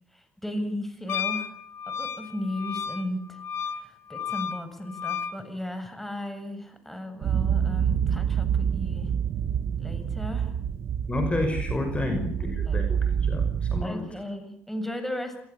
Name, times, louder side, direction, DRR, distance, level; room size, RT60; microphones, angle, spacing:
voice 1, 0.1-1.5 1.9-3.4 3.7-9.1 9.8-10.5 12.0-12.8 13.8-15.4, left 1 dB, 5° left, 8 dB, 7.2 m, -35 dB
Wind instrument woodwind instrument, 1.1-5.4, left 7 dB, 60° left, 1.8 m, -33 dB
sound 1, 7.2-13.8, right 8 dB, 60° right, 1.8 m, -27 dB
voice 2, 11.1-14.0, left 2 dB, 20° left, 6 dB, 5.8 m, -30 dB
26.5 x 20.0 x 8.6 m, 0.65 s
supercardioid pair, 75°, 5 cm